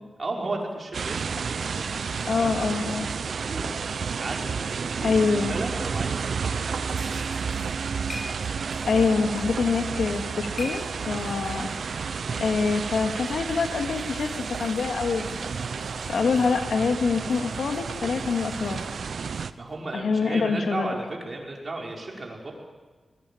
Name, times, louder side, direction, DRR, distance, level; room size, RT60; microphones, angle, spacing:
voice 1, 0.2-3.0 3.3-7.3 11.0-11.3 19.6-22.5, right 2 dB, 40° right, -1 dB, 5.7 m, -35 dB
sound 1, 0.9-19.5, right 5 dB, 75° right, 0.9 m, -31 dB
voice 2, 2.3-3.1 5.0-5.6 8.9-11.7 12.4-14.3 14.6-15.4 16.1-18.8 19.9-20.9, left 4 dB, 85° left, 5 dB, 2.3 m, -25 dB
sound 2, 6.9-19.8, equal, 5° left, 7.4 m, -48 dB
sound 3, 7.3-11.6, left 1 dB, 50° left, 2.8 m, -44 dB
24.5 x 21.5 x 8.8 m, 1.3 s
wide cardioid pair, 125°, 0 cm